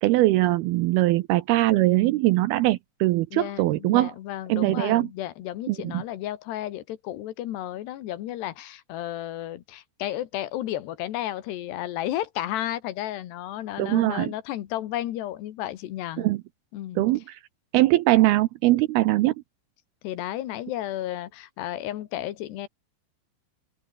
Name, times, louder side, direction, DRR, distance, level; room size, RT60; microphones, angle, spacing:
voice 1, 0.0-4.1 4.5-5.1 5.7-6.0 13.8-14.3 16.2-16.4 17.0-17.4 17.7-19.3, right 17 dB, 85° right, 2.2 m, -21 dB
voice 2, 3.3-16.3 16.7-17.1 20.0-22.7, left 13 dB, 70° left, 3.4 m, -33 dB
open air
omnidirectional pair, 5.3 m